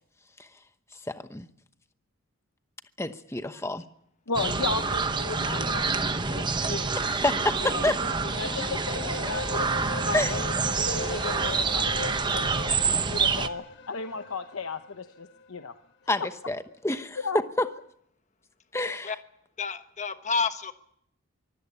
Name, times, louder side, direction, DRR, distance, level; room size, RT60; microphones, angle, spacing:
voice 1, 1.1-1.5 3.0-3.8 7.2-7.9 10.1-10.3 16.1-17.2 17.6-17.7 18.7-19.1, left 2 dB, 15° left, 0.9 m, -28 dB
voice 2, 4.3-7.0 7.6-12.5 12.9-15.7 16.2-16.3 17.2-17.4, left 4 dB, 80° left, 1.0 m, -35 dB
sound 1, 4.3-13.5, right 4 dB, 20° right, 0.8 m, -27 dB
sound 2, 6.7-15.5, left 3 dB, 55° left, 1.4 m, -40 dB
voice 3, 19.6-20.7, left 4 dB, 35° left, 1.2 m, -29 dB
24.0 x 16.0 x 8.2 m
head